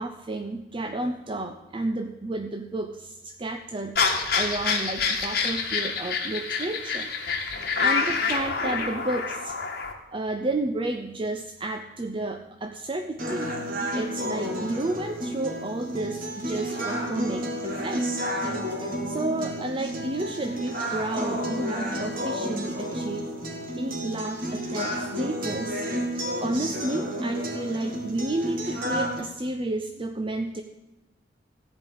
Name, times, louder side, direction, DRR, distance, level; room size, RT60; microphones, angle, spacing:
voice 1, 0.0-7.1 7.5-9.5 10.1-13.6 13.9-18.1 18.7-23.3 23.8-25.9 26.4-30.6, right 2 dB, 30° right, 6 dB, 0.6 m, -31 dB
sound 1, 4.0-9.9, left 5 dB, 55° left, 1.7 m, -27 dB
sound 2, 13.2-29.2, equal, 50° right, 2.4 m, -31 dB
14.5 x 5.3 x 9.6 m, 1.0 s
head